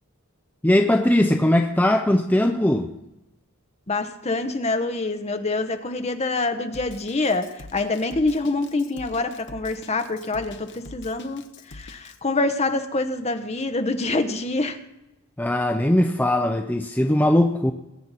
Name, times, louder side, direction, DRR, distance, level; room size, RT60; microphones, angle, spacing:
voice 1, 0.6-2.9 15.4-17.7, left 1 dB, 10° left, 4 dB, 0.5 m, -20 dB
voice 2, 3.9-14.8, left 2 dB, 30° left, 8 dB, 0.9 m, -26 dB
Drum kit, 6.7-12.2, left 3 dB, 55° left, 0.9 m, -43 dB
21.5 x 8.7 x 4.1 m, 0.94 s
head